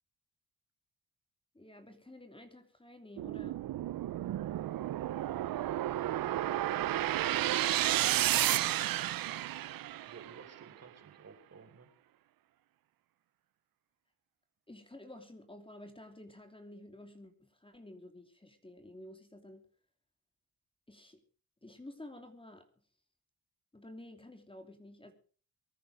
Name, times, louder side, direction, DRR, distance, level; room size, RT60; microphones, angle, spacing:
voice 1, 1.5-3.6 14.7-19.7 20.9-21.2 21.6-22.7 23.7-25.1, left 1 dB, 15° left, 6 dB, 3.0 m, -51 dB
sound 1, 3.2-10.4, right 13 dB, 80° right, 0.7 m, -32 dB
voice 2, 6.5-7.7 10.1-11.9, right 5 dB, 45° right, 7 dB, 4.2 m, -52 dB
23.0 x 9.9 x 5.0 m, 0.43 s
cardioid pair, 70°, 34 cm